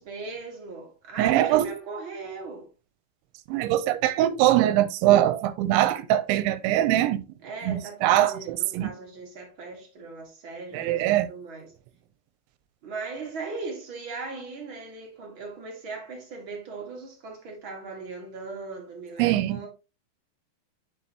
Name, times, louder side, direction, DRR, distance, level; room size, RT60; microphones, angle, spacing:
voice 1, 0.0-2.7 7.4-11.7 12.8-19.7, right 4 dB, 60° right, 1.2 m, -38 dB
voice 2, 1.2-1.7 3.5-7.2 7.6-8.9 10.7-11.3 19.2-19.6, right 13 dB, 90° right, 2.9 m, -22 dB
7.7 x 6.0 x 2.9 m
omnidirectional pair, 5.2 m